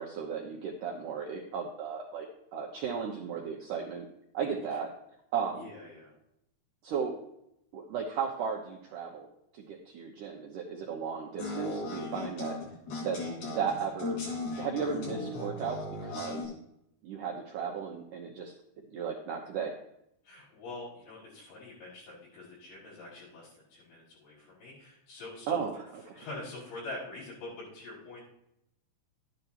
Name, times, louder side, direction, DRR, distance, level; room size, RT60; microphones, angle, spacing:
voice 1, 0.0-4.1 4.3-4.9 5.3-5.7 6.8-7.2 7.7-9.3 9.5-12.6 13.0-13.2 13.5-14.2 14.6-16.5 17.0-18.5 18.9-19.8 25.5-26.2, right 6 dB, 75° right, 0 dB, 1.9 m, -35 dB
voice 2, 5.6-6.1 20.2-25.6 26.1-28.2, left 2 dB, 90° left, -9 dB, 6.8 m, -45 dB
sound 1, 11.4-16.5, left 2 dB, 70° left, 5.6 m, -37 dB
12.0 x 10.5 x 2.9 m, 0.79 s
omnidirectional pair, 4.9 m